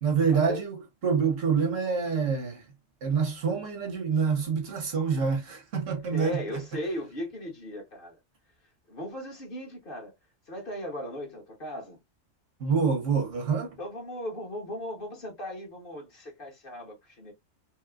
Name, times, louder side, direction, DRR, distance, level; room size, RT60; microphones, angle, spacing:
voice 1, 0.0-2.6 3.0-6.6 12.6-13.7, right 6 dB, 75° right, 1.5 m, -26 dB
voice 2, 6.0-8.2 8.9-10.1 10.5-12.0 13.8-17.3, equal, 45° left, 1.3 m, -37 dB
4.6 x 2.1 x 2.3 m
omnidirectional pair, 1.3 m